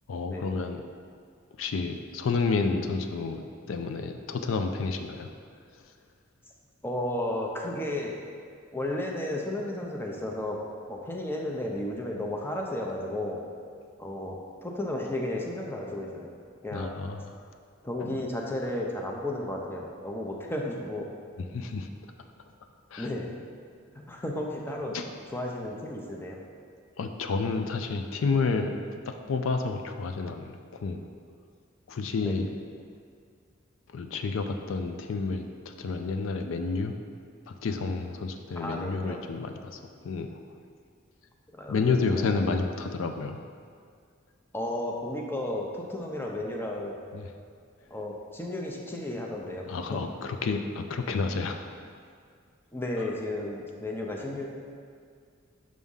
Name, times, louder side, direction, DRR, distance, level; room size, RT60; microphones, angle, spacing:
voice 1, 0.1-0.8 1.6-5.3 16.7-17.4 18.0-18.2 21.4-21.9 22.9-23.1 24.9-25.1 27.0-28.8 29.1-31.1 31.9-32.5 33.9-36.9 37.5-40.4 41.7-43.4 47.1-47.3 49.7-51.6 51.8-51.9, left 4 dB, 70° left, 6 dB, 0.4 m, -30 dB
voice 2, 6.8-8.3 8.7-10.6 10.9-13.4 14.0-16.3 16.6-16.9 17.8-21.1 23.0-23.3 23.9-24.9 25.3-26.4 32.2-32.3 38.6-39.2 41.5-42.5 44.5-47.0 47.9-50.0 52.7-54.5, left 1 dB, 10° left, -1 dB, 0.6 m, -33 dB
6.2 x 3.6 x 5.4 m, 2.2 s
head